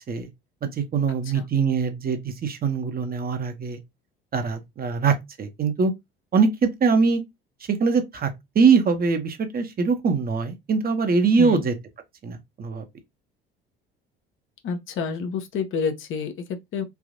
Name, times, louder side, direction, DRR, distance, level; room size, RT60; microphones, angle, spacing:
voice 1, 0.6-3.8 4.3-5.9 6.3-7.2 7.7-8.3 8.5-11.7 12.2-12.8, right 5 dB, 30° right, 0.8 m, -22 dB
voice 2, 14.6-16.8, left 6 dB, 45° left, 0.7 m, -29 dB
3.4 x 2.6 x 2.5 m
figure-of-eight pair, 60°, 30 cm